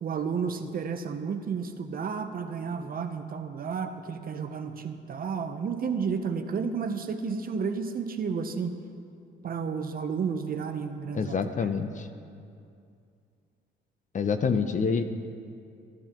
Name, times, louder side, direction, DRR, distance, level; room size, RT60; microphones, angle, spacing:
voice 1, 0.0-8.7 9.4-11.4, right 6 dB, 45° right, 7 dB, 0.7 m, -32 dB
voice 2, 11.1-12.1 14.1-15.0, left 5 dB, 40° left, 9 dB, 0.6 m, -27 dB
15.0 x 10.5 x 2.9 m, 2.4 s
cardioid pair, 90°, 20 cm